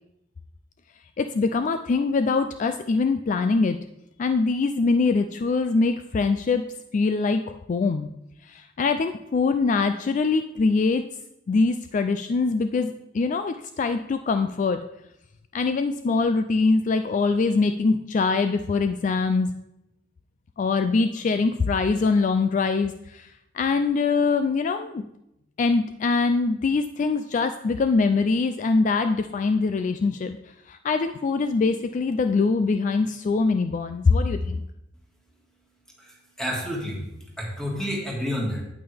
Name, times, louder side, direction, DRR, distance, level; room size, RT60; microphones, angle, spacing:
voice 1, 1.2-3.8 4.2-6.6 6.9-8.1 8.4-11.0 11.5-14.8 15.5-19.5 20.6-23.3 23.5-25.0 25.6-30.4 30.7-34.6, left 4 dB, 40° left, 9 dB, 0.3 m, -23 dB
voice 2, 36.0-37.1 37.4-38.6, equal, 5° left, -2 dB, 1.9 m, -29 dB
8.9 x 8.8 x 3.4 m, 0.86 s
head